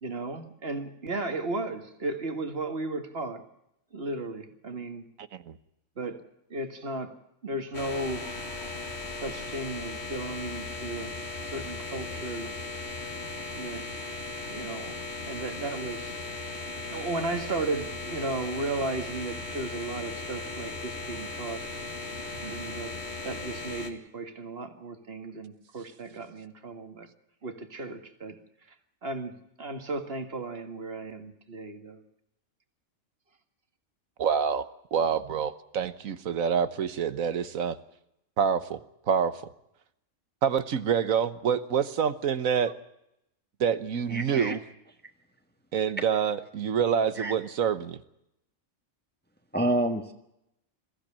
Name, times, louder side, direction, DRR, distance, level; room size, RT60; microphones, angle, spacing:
voice 1, 0.0-3.4 3.9-5.1 6.0-6.2 6.5-7.2 7.4-8.3 9.2-11.1 11.4-12.5 13.5-13.9 14.5-15.0 15.2-16.2 16.9-21.6 22.4-23.0 23.2-27.1 27.4-28.4 29.0-32.0, right 2 dB, 45° right, 7 dB, 2.1 m, -35 dB
sound 1, 7.7-23.9, left 3 dB, 50° left, 2.4 m, -37 dB
voice 2, 34.2-37.8 38.4-38.8 39.1-39.4 40.4-42.7 43.6-44.6 45.7-48.0, right 7 dB, 75° right, 13 dB, 1.5 m, -27 dB
voice 3, 44.1-44.6 47.2-47.3 49.5-50.1, right 1 dB, 5° left, 5 dB, 1.4 m, -28 dB
22.0 x 15.0 x 8.7 m, 0.82 s
omnidirectional pair, 1.4 m